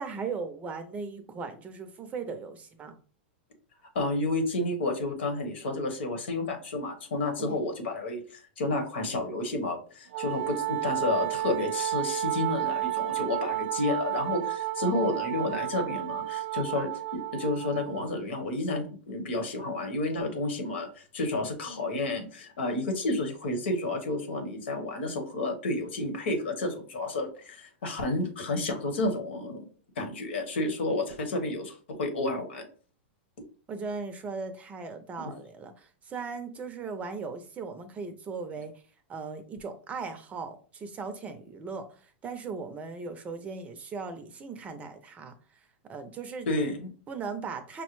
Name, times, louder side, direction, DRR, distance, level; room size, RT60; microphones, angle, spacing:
voice 1, 0.0-3.0 7.4-7.6 33.7-38.7 39.1-41.9 42.2-45.3 45.8-46.5 47.1-47.8, right 4 dB, 25° right, 8 dB, 0.6 m, -38 dB
voice 2, 3.9-29.6 30.0-32.6 35.2-35.3 46.4-46.9, left 2 dB, 80° left, 5 dB, 1.2 m, -31 dB
Wind instrument woodwind instrument, 10.1-18.1, right 14 dB, 70° right, 0.3 m, -32 dB
5.5 x 2.1 x 3.0 m, 0.40 s
hypercardioid pair, 125°, 6 cm